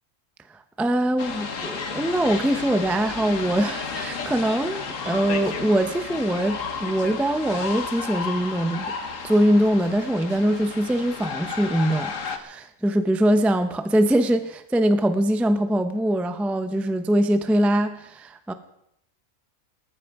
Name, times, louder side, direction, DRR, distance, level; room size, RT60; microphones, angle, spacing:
voice 1, 0.5-8.9 9.2-18.5, right 1 dB, ahead, 9 dB, 0.7 m, -23 dB
sound 1, 1.2-12.4, left 5 dB, 60° left, 1.7 m, -33 dB
19.0 x 14.0 x 4.8 m, 0.76 s
omnidirectional pair, 1.5 m